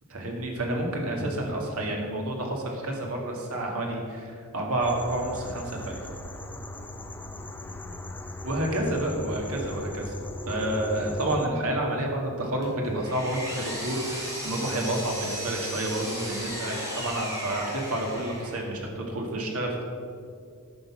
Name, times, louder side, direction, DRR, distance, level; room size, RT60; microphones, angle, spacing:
voice 1, 0.1-6.0 8.4-10.2 10.5-19.8, right 1 dB, 75° right, 0 dB, 2.0 m, -29 dB
sound 1, 4.8-11.5, left 1 dB, 10° left, 0.5 m, -38 dB
Power tool, 12.6-18.7, equal, 15° right, 2.9 m, -36 dB
10.5 x 6.6 x 5.9 m, 2.3 s
head